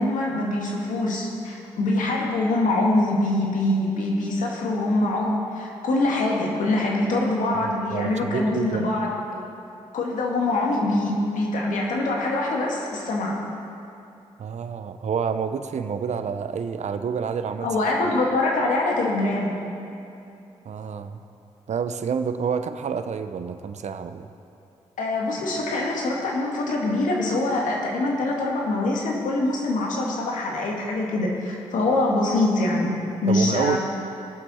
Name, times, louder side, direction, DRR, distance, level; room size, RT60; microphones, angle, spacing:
voice 1, 0.0-9.2 9.9-13.3 17.6-19.6 25.0-33.8, left 2 dB, 80° left, -2 dB, 2.0 m, -24 dB
voice 2, 7.6-8.9 14.4-17.7 18.1-18.2 20.7-21.2 21.7-24.3 33.3-33.8, right 6 dB, 65° right, 10 dB, 0.7 m, -28 dB
19.5 x 7.5 x 4.3 m, 2.6 s
supercardioid pair, 45°, 13 cm